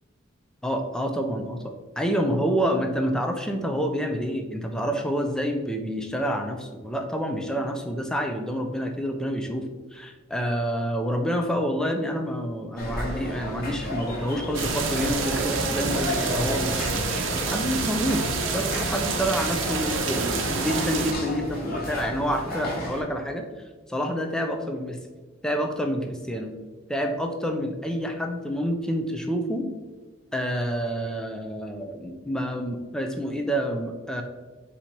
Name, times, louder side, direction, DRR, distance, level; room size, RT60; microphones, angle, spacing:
voice 1, 0.6-1.6 2.0-18.3 18.5-23.5 23.9-25.0 25.4-26.5 26.9-29.7 30.3-34.2, equal, 5° left, 4 dB, 0.4 m, -28 dB
sound 1, 12.8-23.0, left 1 dB, 50° left, 1.1 m, -32 dB
sound 2, 14.5-21.1, right 5 dB, 80° right, 0.6 m, -28 dB
4.3 x 2.7 x 4.4 m, 1.3 s
head